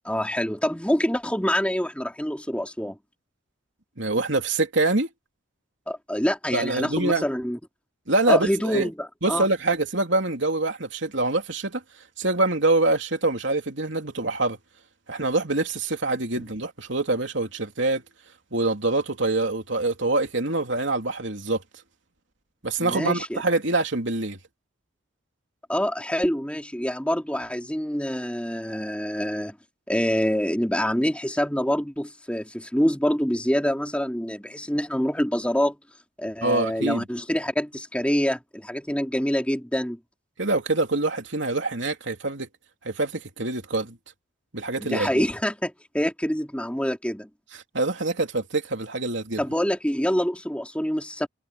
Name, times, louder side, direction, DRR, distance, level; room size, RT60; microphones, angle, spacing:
voice 1, 0.0-3.0 5.9-7.6 8.3-9.5 22.8-23.4 25.7-29.6 29.9-35.8 36.2-40.0 44.8-47.3 49.4-51.3, equal, 5° left, 3.0 m, -26 dB
voice 2, 4.0-5.1 6.5-7.2 8.1-8.9 9.2-11.8 12.2-14.6 15.1-18.0 18.5-21.6 22.6-24.4 36.4-37.0 40.4-42.5 42.9-44.0 44.5-45.2 47.5-49.4, right 2 dB, 60° right, 3.3 m, -25 dB
head